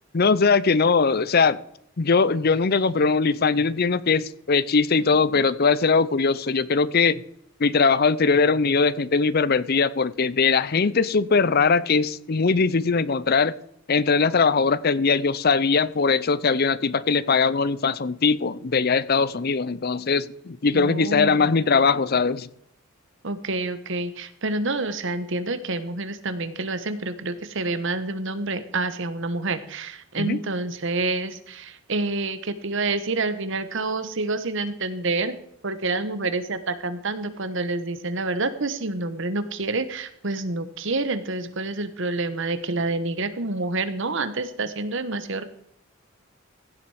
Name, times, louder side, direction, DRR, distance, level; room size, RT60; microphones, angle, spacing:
voice 1, 0.1-1.6 2.0-7.2 7.6-13.5 13.9-22.5 30.2-30.4, left 4 dB, 45° left, 18 dB, 0.5 m, -21 dB
voice 2, 20.7-21.5 23.2-35.4 35.6-45.4, right 3 dB, 60° right, 11 dB, 1.1 m, -28 dB
16.0 x 7.4 x 4.9 m, 0.73 s
head